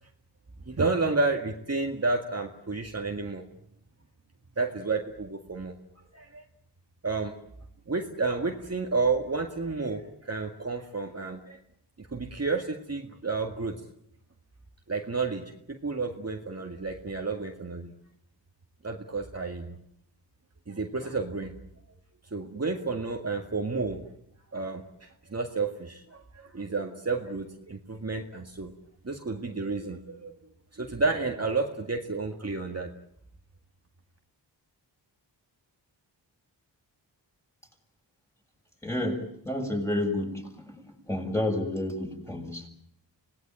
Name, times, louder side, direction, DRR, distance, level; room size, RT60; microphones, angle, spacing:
voice 1, 0.7-3.4 4.6-5.8 6.1-6.4 7.0-7.4 7.9-11.6 12.0-13.8 14.9-17.9 18.8-19.8 20.7-21.5 21.9-22.0 22.3-24.0 24.5-28.7 29.0-30.4 30.7-32.9, right 3 dB, 35° right, 3 dB, 2.0 m, -31 dB
voice 2, 38.8-40.8 41.1-42.7, left 1 dB, 5° left, 2 dB, 6.6 m, -30 dB
25.5 x 18.5 x 9.1 m, 0.73 s
cardioid pair, 60°, 44 cm